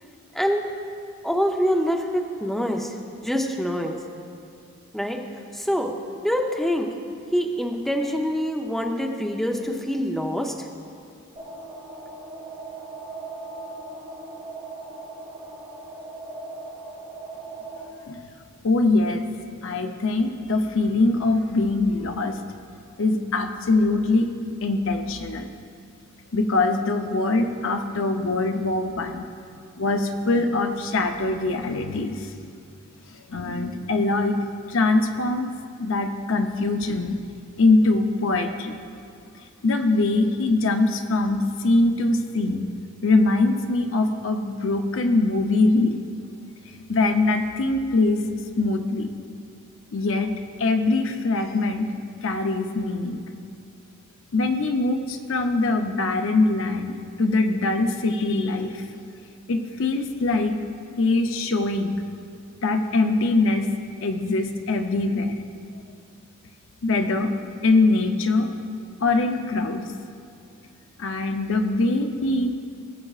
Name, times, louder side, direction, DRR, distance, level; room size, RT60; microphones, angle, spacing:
voice 1, 0.3-0.7 1.2-2.9 3.2-4.0 4.9-5.2 5.5-5.9 6.2-6.9 7.3-10.5, equal, ahead, 2 dB, 0.5 m, -25 dB
sound 1, 11.4-17.9, right 2 dB, 25° right, 1.5 m, -38 dB
voice 2, 18.6-19.2 19.6-22.4 23.0-24.3 24.6-25.5 26.3-29.2 29.8-32.3 33.3-35.5 35.8-37.2 37.6-38.7 39.6-42.7 43.0-46.0 46.9-49.1 49.9-50.3 50.6-51.9 52.2-53.2 54.3-58.8 59.5-60.6 61.0-62.0 62.6-63.7 64.0-65.4 66.8-67.3 67.6-68.5 69.0-69.8 71.0-72.5, left 2 dB, 60° left, 6 dB, 0.6 m, -22 dB
19.0 x 7.6 x 2.4 m, 2.5 s
head